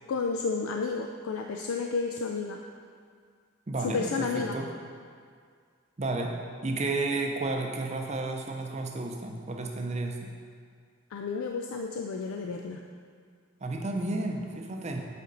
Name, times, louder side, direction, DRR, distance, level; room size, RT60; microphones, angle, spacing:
voice 1, 0.1-2.6 3.8-4.6 11.1-12.8, left 4 dB, 80° left, 2 dB, 0.4 m, -31 dB
voice 2, 3.7-4.7 6.0-6.4 6.6-10.3 13.6-15.0, right 2 dB, 30° right, 2 dB, 0.5 m, -32 dB
8.2 x 4.3 x 3.9 m, 2.1 s
head